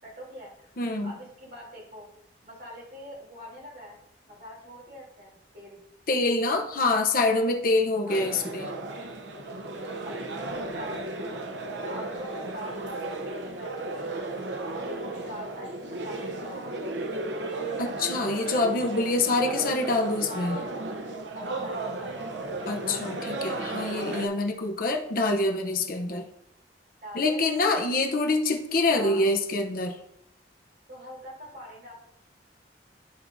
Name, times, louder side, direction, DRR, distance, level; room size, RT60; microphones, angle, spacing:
voice 1, 0.0-0.7 1.0-2.1 2.4-5.8 8.0-8.2 10.0-11.5 11.8-14.2 14.7-16.8 20.3-20.8 21.3-22.3 27.0-27.9 28.9-29.3 30.9-31.9, equal, 55° right, -4 dB, 3.0 m, -44 dB
voice 2, 0.8-1.2 6.1-8.7 17.8-20.6 22.7-26.3 27.1-30.0, left 2 dB, 50° left, 3 dB, 0.8 m, -26 dB
sound 1, 8.1-24.3, right 2 dB, 80° right, 0.8 m, -34 dB
12.0 x 4.5 x 2.7 m, 0.80 s
head